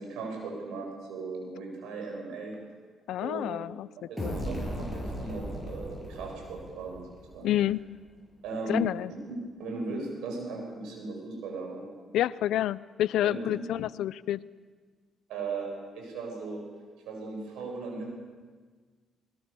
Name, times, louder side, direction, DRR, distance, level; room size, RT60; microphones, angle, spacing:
voice 1, 0.0-2.6 3.2-3.6 4.1-7.5 8.4-8.8 9.6-11.8 13.2-13.4 15.3-16.6 17.1-18.1, right 3 dB, 90° right, 0 dB, 7.8 m, -37 dB
voice 2, 3.1-3.9 4.2-4.4 7.4-7.8 8.7-9.1 12.1-14.4, left 12 dB, 80° left, 19 dB, 0.5 m, -28 dB
sound 1, 4.2-7.8, equal, 5° right, 7.8 m, -37 dB
21.0 x 21.0 x 7.0 m, 1.5 s
cardioid pair, 90°, 0 cm